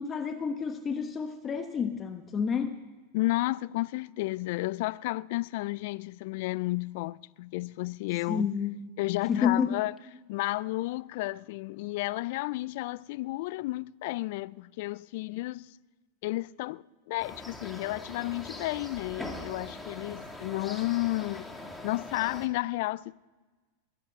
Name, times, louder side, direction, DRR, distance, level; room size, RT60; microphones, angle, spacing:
voice 1, 0.0-2.8 8.3-8.7 9.3-9.8, left 6 dB, 25° left, 1.2 m, -29 dB
voice 2, 3.1-8.5 9.0-9.9 10.3-15.7 16.2-21.4 21.8-23.2, left 19 dB, 60° left, 0.4 m, -32 dB
sound 1, 17.2-22.5, left 2 dB, 5° left, 2.5 m, -42 dB
21.0 x 8.5 x 7.9 m
hypercardioid pair, 95°, 0 cm